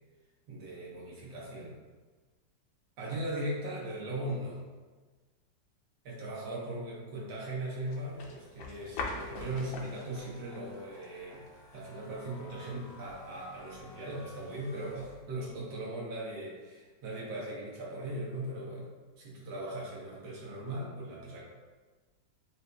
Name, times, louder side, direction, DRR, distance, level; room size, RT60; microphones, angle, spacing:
voice 1, 0.5-1.7 3.0-4.6 6.0-11.4 11.7-18.9 19.2-21.4, right 1 dB, 85° right, -4 dB, 1.9 m, -39 dB
sound 1, 7.9-15.2, left 3 dB, 80° left, 1.4 m, -46 dB
sound 2, 9.1-15.6, left 3 dB, 45° left, 0.9 m, -54 dB
7.7 x 2.7 x 2.3 m, 1.3 s
omnidirectional pair, 2.0 m